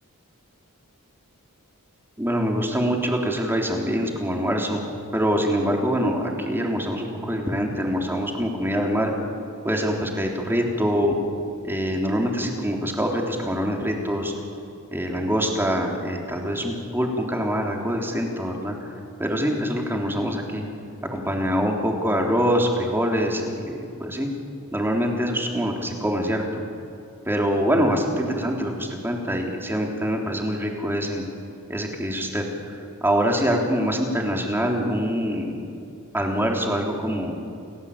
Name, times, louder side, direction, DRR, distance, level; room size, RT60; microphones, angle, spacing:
voice 1, 2.2-4.8 5.1-9.1 9.6-11.2 11.6-14.3 14.9-18.7 19.2-20.6 21.1-24.3 24.7-26.6 27.3-31.2 31.7-35.7 36.1-37.3, equal, 10° right, 1 dB, 3.5 m, -24 dB
29.5 x 18.0 x 8.6 m, 2.5 s
head